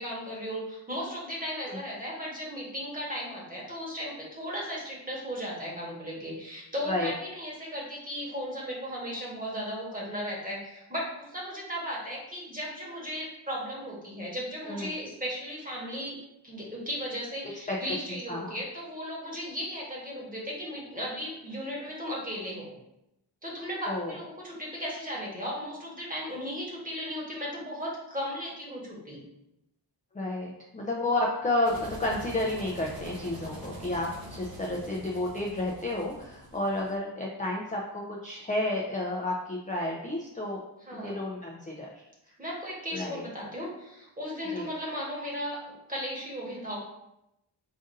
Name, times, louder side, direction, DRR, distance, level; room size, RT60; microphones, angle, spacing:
voice 1, 0.0-16.2 16.4-22.7 23.4-29.2 40.8-41.2 42.4-45.6 45.9-46.8, equal, 20° right, -5 dB, 1.2 m, -36 dB
voice 2, 17.7-18.6 23.9-24.2 30.1-40.6 40.9-41.9 42.9-43.2 44.5-44.7, left 2 dB, 20° left, -2 dB, 0.4 m, -31 dB
sound 1, 31.6-36.9, right 1 dB, 50° right, 0.8 m, -44 dB
5.1 x 2.5 x 2.6 m, 0.85 s
wide cardioid pair, 105°, 44 cm